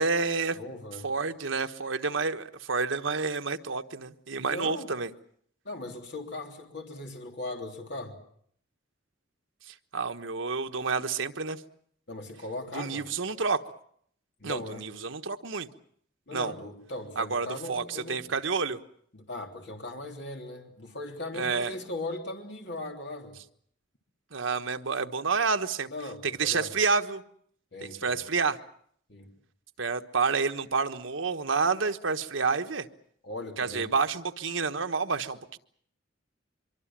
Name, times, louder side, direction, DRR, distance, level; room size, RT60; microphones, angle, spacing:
voice 1, 0.0-0.6 1.0-5.1 9.7-11.6 12.7-13.6 14.4-15.7 16.3-16.5 17.2-18.8 21.3-21.7 24.3-25.9 26.2-27.2 28.0-28.6 29.8-32.9 33.6-35.6, right 4 dB, 85° right, 7 dB, 1.3 m, -29 dB
voice 2, 0.6-1.1 4.5-4.9 5.7-8.2 12.1-13.1 14.4-14.9 16.3-18.3 19.1-23.4 25.9-26.7 27.7-28.2 29.1-29.3 33.2-33.9, left 2 dB, 60° left, 2 dB, 3.4 m, -38 dB
24.5 x 24.0 x 7.5 m, 0.65 s
head